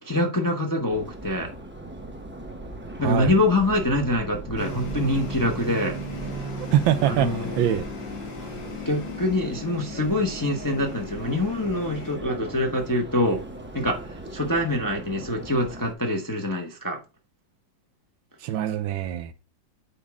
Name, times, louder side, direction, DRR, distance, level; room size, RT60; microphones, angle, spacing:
voice 1, 0.0-1.5 3.0-6.6 7.0-7.6 8.8-13.4 13.7-17.0, left 1 dB, 15° left, 0.6 m, -25 dB
Subway metro underground, 0.9-15.9, right 1 dB, 20° right, 0.3 m, -39 dB
sound 1, 4.6-12.2, left 1 dB, 75° left, 2.3 m, -37 dB
voice 2, 6.7-7.3 7.6-7.9 18.4-19.3, right 11 dB, 90° right, 1.5 m, -23 dB
8.5 x 4.7 x 3.6 m
omnidirectional pair, 2.1 m